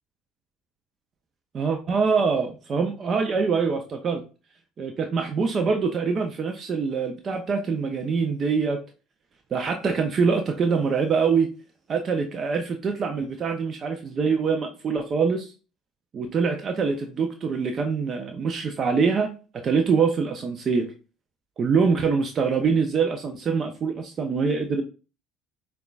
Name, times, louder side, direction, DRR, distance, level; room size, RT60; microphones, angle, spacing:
voice 1, 1.5-4.2 4.8-8.8 9.5-11.5 11.9-15.5 16.1-20.9 21.6-24.8, right 5 dB, 40° right, 6 dB, 0.5 m, -24 dB
6.3 x 2.3 x 2.3 m, 0.34 s
hypercardioid pair, 75°, 0 cm